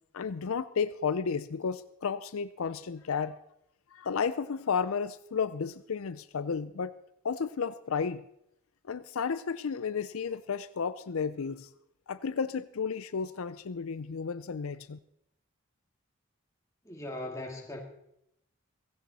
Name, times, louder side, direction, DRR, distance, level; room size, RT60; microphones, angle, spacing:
voice 1, 0.1-3.4 3.9-7.0 7.2-8.2 8.9-11.7 12.1-15.0, left 6 dB, 75° left, 0.5 m, -32 dB
voice 2, 16.8-17.8, left 1 dB, 15° left, 2.3 m, -39 dB
16.5 x 16.5 x 4.1 m
head